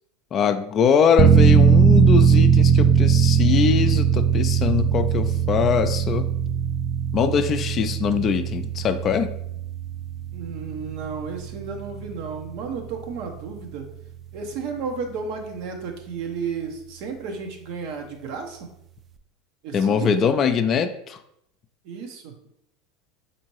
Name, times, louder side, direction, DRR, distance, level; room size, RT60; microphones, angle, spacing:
voice 1, 0.3-6.3 7.1-9.3 19.7-21.2, left 7 dB, 40° left, 9 dB, 0.4 m, -22 dB
sound 1, 1.2-13.7 14.0-14.1, right 7 dB, 35° right, 0.4 m, -20 dB
voice 2, 10.3-13.9 14.3-18.7 19.6-20.4 21.8-22.4, right 5 dB, 60° right, 3 dB, 0.8 m, -33 dB
4.3 x 2.7 x 3.0 m, 0.76 s
hypercardioid pair, 90°, 0 cm